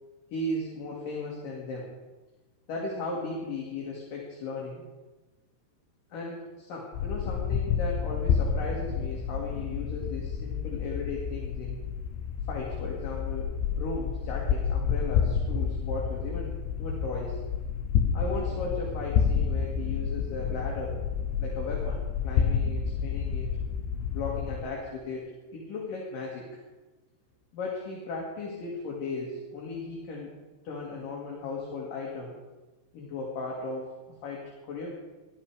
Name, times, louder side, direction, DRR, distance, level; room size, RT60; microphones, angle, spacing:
voice 1, 0.3-1.9 2.7-4.8 6.1-11.8 12.5-17.4 18.1-21.0 21.4-23.5 24.1-26.5 27.5-30.3 30.6-32.4 32.9-34.9, left 3 dB, 55° left, -3 dB, 3.3 m, -36 dB
sound 1, 6.9-24.7, left 7 dB, 80° left, 3.0 m, -29 dB
16.5 x 12.5 x 4.9 m, 1.2 s
omnidirectional pair, 5.3 m